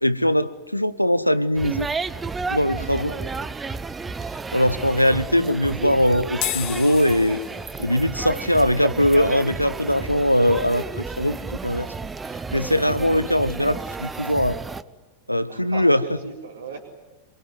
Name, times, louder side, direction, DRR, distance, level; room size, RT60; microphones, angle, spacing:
voice 1, 0.0-1.9 2.5-3.1 4.5-7.4 7.8-11.4 11.6-11.9 12.5-14.6 15.3-16.0, left 1 dB, 90° left, 17 dB, 0.9 m, -21 dB
sound 1, 1.6-14.8, right 4 dB, 15° right, 0.9 m, -32 dB
voice 2, 2.9-3.5 15.5-16.9, right 5 dB, 70° right, -4 dB, 4.2 m, -36 dB
sound 2, 6.3-12.9, left 13 dB, 40° left, 1.8 m, -37 dB
26.0 x 23.0 x 9.6 m, 1.1 s
figure-of-eight pair, 90°, 0 cm